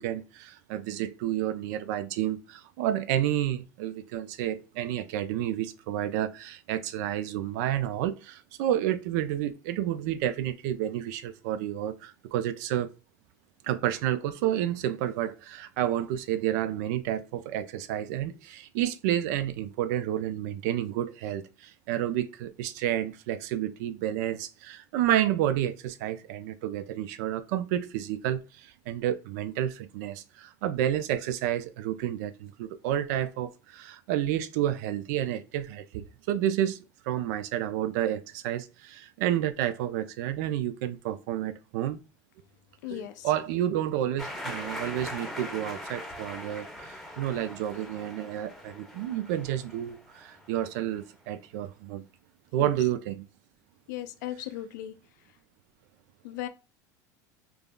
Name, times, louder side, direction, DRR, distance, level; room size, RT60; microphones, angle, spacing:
voice 1, 0.0-12.9 13.6-42.0 42.9-52.1 52.5-53.3, right 11 dB, 75° right, 0.4 m, -30 dB
voice 2, 42.8-43.3 52.6-52.8 53.9-54.9 56.2-56.5, left 13 dB, 85° left, 0.5 m, -37 dB
sound 1, 44.2-50.8, left 1 dB, ahead, 0.7 m, -41 dB
3.4 x 2.0 x 2.2 m
supercardioid pair, 105°, 10 cm